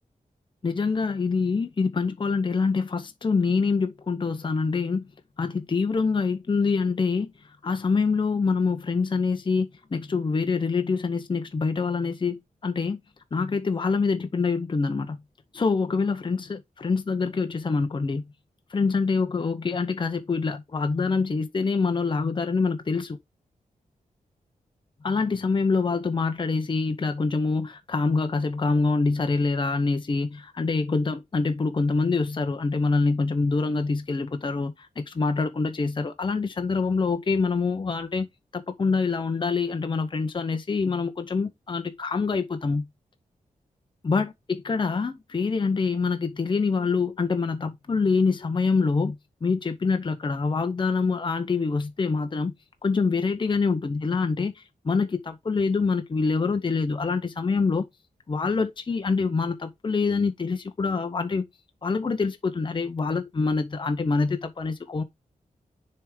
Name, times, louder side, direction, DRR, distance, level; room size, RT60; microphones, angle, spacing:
voice 1, 0.6-5.1 5.4-7.3 7.6-13.0 13.3-15.2 15.5-18.2 18.7-23.2 25.0-38.3 38.5-42.9 44.0-44.3 44.7-49.2 49.4-52.5 52.8-57.9 58.3-61.4 61.8-65.0, left 4 dB, 35° left, 0.8 m, -25 dB
6.7 x 3.5 x 4.9 m
wide cardioid pair, 100°, 14 cm